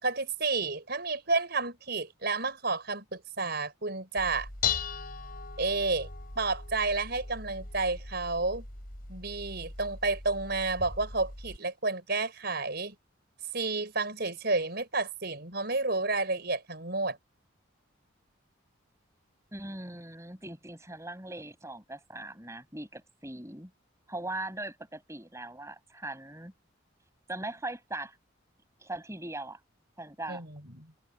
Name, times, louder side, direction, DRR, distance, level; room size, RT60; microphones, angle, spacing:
voice 1, 0.0-4.5 5.6-6.1 6.4-8.6 9.1-12.9 13.5-17.2 30.3-30.8, right 3 dB, 50° right, 5.9 m, -31 dB
Dishes pots and pans, 4.2-11.6, left 6 dB, 45° left, 5.8 m, -38 dB
voice 2, 19.5-23.7 24.1-26.5 27.3-28.2 28.8-29.6 30.0-30.4, right 2 dB, 15° right, 6.4 m, -40 dB
head